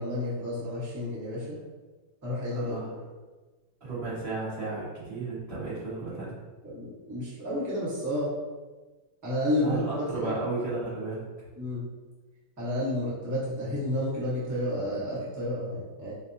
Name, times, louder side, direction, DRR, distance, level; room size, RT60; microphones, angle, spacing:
voice 1, 0.0-1.6 2.2-3.0 6.6-8.3 9.2-10.3 11.6-11.8 12.6-16.1, left 1 dB, 15° right, -9 dB, 0.6 m, -31 dB
voice 2, 2.5-2.9 3.8-6.4 9.6-11.2, right 3 dB, 40° right, -11 dB, 1.1 m, -33 dB
5.0 x 2.1 x 2.6 m, 1.3 s
omnidirectional pair, 2.2 m